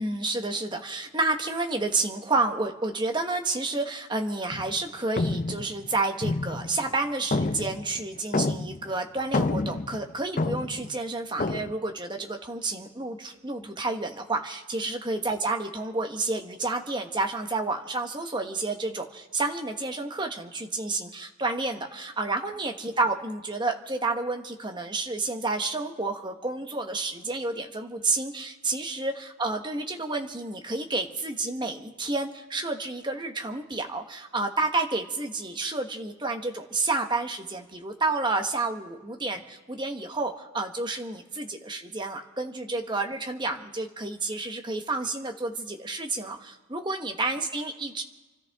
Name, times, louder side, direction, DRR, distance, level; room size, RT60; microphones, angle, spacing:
voice 1, 0.0-48.0, right 3 dB, 20° right, 4 dB, 1.1 m, -30 dB
sound 1, 4.5-4.8 5.2-6.9 7.3-8.9 9.2-10.9 11.4-11.7, left 2 dB, 35° left, 0.5 m, -29 dB
28.5 x 13.5 x 3.5 m, 1.2 s
head